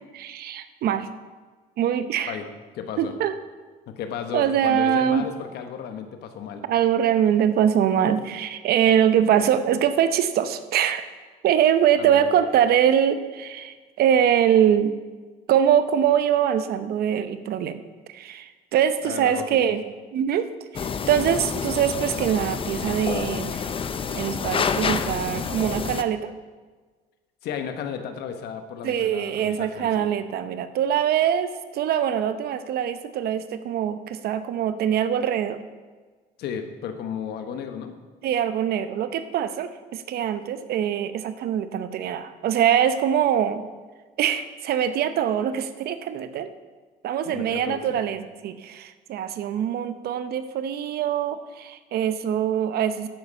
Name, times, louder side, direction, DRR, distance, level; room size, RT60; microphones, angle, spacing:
voice 1, 0.1-1.1 1.8-2.4 3.0-3.3 4.3-5.3 6.7-11.1 11.4-14.9 15.5-17.8 18.1-19.8 20.1-23.6 24.1-26.3 28.8-35.6 38.2-43.6 44.2-46.5 47.0-53.1, right 9 dB, 65° right, 11 dB, 0.8 m, -23 dB
voice 2, 2.7-3.1 3.9-6.6 12.0-12.5 19.0-19.7 27.4-30.1 36.4-38.0 47.2-48.0, left 7 dB, 75° left, 7 dB, 1.2 m, -34 dB
sound 1, 20.7-26.0, left 6 dB, 30° left, 0.6 m, -28 dB
10.5 x 8.1 x 5.3 m, 1.4 s
cardioid pair, 110°, 17 cm